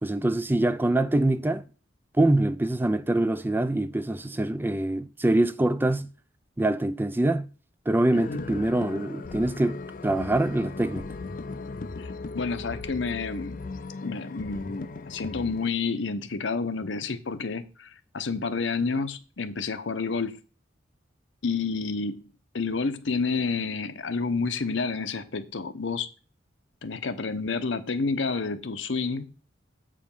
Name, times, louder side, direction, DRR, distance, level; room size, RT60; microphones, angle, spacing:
voice 1, 0.0-1.6 2.2-6.1 6.6-7.5 7.9-11.1, right 1 dB, 10° right, 0.4 m, -24 dB
voice 2, 8.1-8.5 12.0-13.6 14.0-20.4 21.4-22.2 22.5-26.1 26.8-29.3, left 4 dB, 75° left, 0.8 m, -29 dB
sound 1, 8.1-15.7, left 3 dB, 45° left, 0.5 m, -38 dB
7.8 x 5.1 x 5.4 m
head